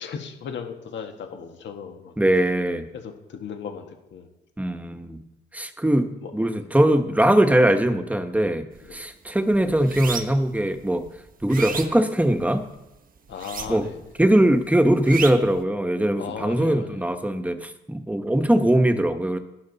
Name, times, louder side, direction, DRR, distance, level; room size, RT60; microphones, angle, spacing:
voice 1, 0.0-2.1 2.9-4.3 6.2-6.3 6.6-6.7 8.8-9.0 13.3-14.1 16.2-17.1, left 7 dB, 65° left, 5 dB, 1.7 m, -36 dB
voice 2, 2.2-2.9 4.6-5.2 5.5-8.7 8.9-11.1 11.4-12.7 13.7-13.9 14.2-19.4, right 1 dB, 5° right, 8 dB, 1.2 m, -21 dB
sound 1, 8.7-9.0 9.4-10.5 11.0-12.7 13.3-14.1 14.3-15.6, right 5 dB, 45° right, 1.2 m, -33 dB
11.5 x 11.5 x 4.1 m, 0.95 s
cardioid pair, 90°, 20 cm